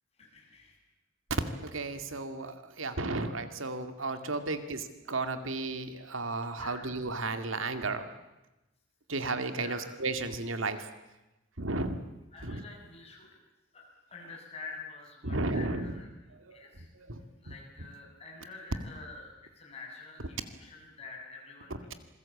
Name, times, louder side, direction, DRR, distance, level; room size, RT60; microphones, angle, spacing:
voice 1, 0.2-0.8 4.3-4.7 6.5-6.8 9.5-9.9 12.3-13.3 13.7-13.8 14.1-16.1 16.5-16.9 17.4-22.0, left 4 dB, 30° left, 0 dB, 7.2 m, -48 dB
voice 2, 1.5-8.1 9.1-10.9 11.6-12.0 12.4-12.6 15.2-16.0 16.5-16.6 16.9-17.2, right 3 dB, 90° right, 9 dB, 2.2 m, -34 dB
27.0 x 21.5 x 8.6 m, 0.98 s
head